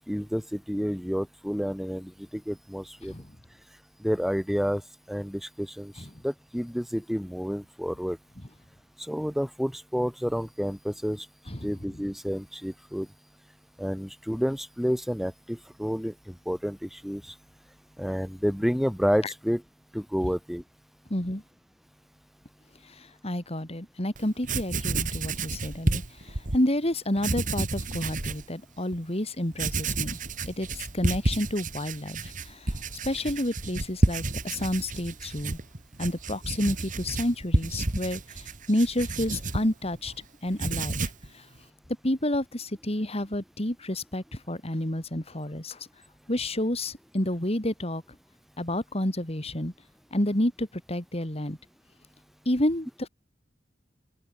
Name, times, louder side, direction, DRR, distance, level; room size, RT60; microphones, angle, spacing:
voice 1, 0.1-3.1 4.0-4.8 5.1-8.2 9.0-11.3 11.6-13.1 13.8-17.3 18.0-19.6 19.9-20.6, equal, ahead, 3.2 m, -30 dB
voice 2, 11.5-12.0 19.2-19.3 21.1-21.4 22.9-30.2 30.5-32.8 33.0-35.6 36.0-40.1 40.4-41.4 42.0-45.9 46.3-48.0 48.6-49.7 50.1-51.6 52.5-53.1, left 1 dB, 35° left, 3.5 m, -30 dB
Writing, 24.1-24.2 24.4-26.6 27.2-28.4 28.9-29.0 29.5-40.2 40.5-41.3, right 2 dB, 45° right, 2.4 m, -30 dB
open air
head